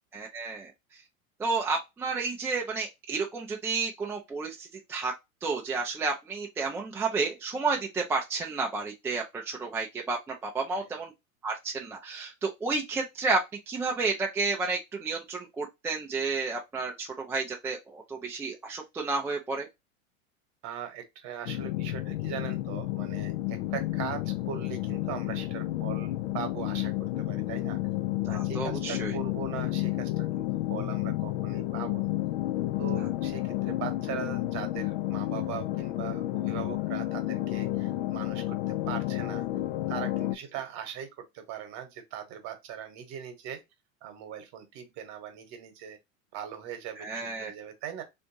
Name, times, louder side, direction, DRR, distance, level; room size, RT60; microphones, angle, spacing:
voice 1, 0.1-0.7 1.4-5.1 5.4-11.1 11.4-13.4 13.7-19.7 28.3-29.1 47.0-47.5, right 4 dB, 5° right, 0.4 m, -31 dB
voice 2, 20.6-27.8 28.3-32.1 32.8-39.5 39.9-43.6 44.0-46.0 46.3-48.0, right 9 dB, 40° right, 1.2 m, -40 dB
sound 1, 21.5-40.4, left 16 dB, 55° left, 0.5 m, -31 dB
3.3 x 2.6 x 2.7 m
hypercardioid pair, 90°, 41 cm